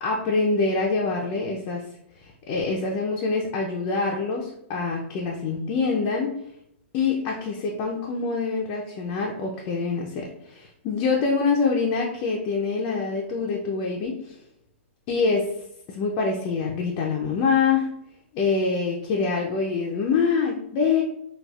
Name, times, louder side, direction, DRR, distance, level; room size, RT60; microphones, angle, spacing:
voice 1, 0.0-1.8 2.2-6.3 6.9-14.4 15.1-15.5 15.9-17.9 18.3-21.0, left 4 dB, 30° left, -1 dB, 0.4 m, -25 dB
4.0 x 2.3 x 2.3 m, 0.75 s
hypercardioid pair, 145°, 7 cm